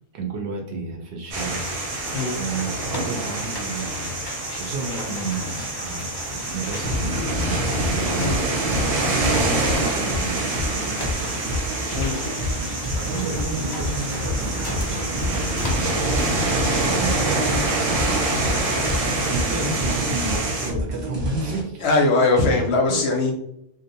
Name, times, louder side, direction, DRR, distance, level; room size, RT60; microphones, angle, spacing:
voice 1, 0.1-2.0 2.4-11.8 13.0-15.8 16.4-21.8 22.9-23.0, right 3 dB, 65° right, 1 dB, 0.8 m, -32 dB
sound 1, 1.3-19.3, left 1 dB, 35° left, 0.3 m, -36 dB
sound 2, 1.3-20.7, right 2 dB, 85° right, 1.1 m, -26 dB
sound 3, 6.8-21.6, equal, 40° right, 0.4 m, -29 dB
voice 2, 21.8-23.3, left 3 dB, 65° left, 1 dB, 0.7 m, -20 dB
2.6 x 2.1 x 2.6 m, 0.75 s
omnidirectional pair, 1.3 m